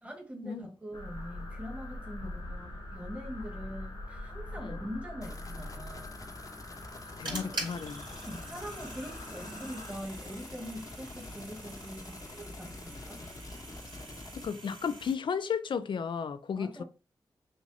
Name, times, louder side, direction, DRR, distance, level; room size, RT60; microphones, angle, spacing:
voice 1, 0.0-6.2 7.3-7.8 8.2-13.2 16.6-16.8, equal, 15° right, 1.8 m, -43 dB
sound 1, 0.9-9.9, left 1 dB, 90° left, 1.6 m, -43 dB
sound 2, 5.2-14.5, left 2 dB, 45° left, 1.0 m, -46 dB
sound 3, 6.7-15.1, right 2 dB, 65° right, 2.6 m, -45 dB
voice 2, 7.2-8.0 14.4-16.8, left 6 dB, 70° left, 0.4 m, -34 dB
6.2 x 2.5 x 2.7 m
cardioid pair, 45°, 9 cm